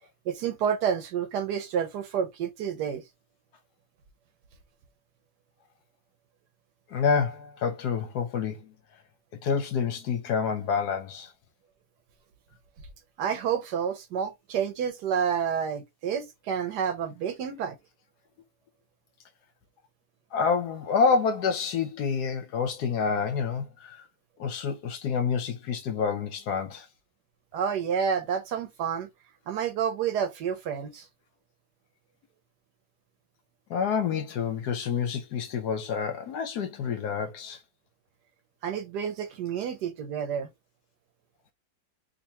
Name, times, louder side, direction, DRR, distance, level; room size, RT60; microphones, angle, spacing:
voice 1, 0.3-3.0 13.2-17.8 27.5-29.1 29.5-31.1 38.6-40.5, right 7 dB, 70° right, 1.2 m, -29 dB
voice 2, 6.9-8.7 9.4-11.3 20.3-24.0 24.4-26.9 33.7-37.6, left 6 dB, 70° left, 1.1 m, -28 dB
3.7 x 2.8 x 2.7 m
omnidirectional pair, 2.0 m